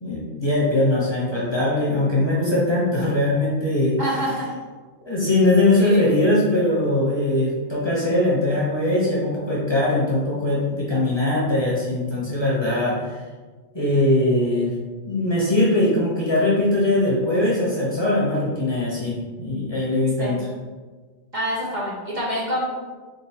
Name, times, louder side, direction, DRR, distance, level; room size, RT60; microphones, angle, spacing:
voice 1, 0.0-4.0 5.1-13.2 13.7-14.7 15.0-20.5, left 1 dB, 25° left, -7 dB, 0.9 m, -21 dB
voice 2, 4.0-4.5 5.8-6.0 20.2-20.4 21.3-22.7, equal, 45° right, -6 dB, 0.9 m, -26 dB
3.7 x 3.7 x 2.9 m, 1.4 s
omnidirectional pair, 1.2 m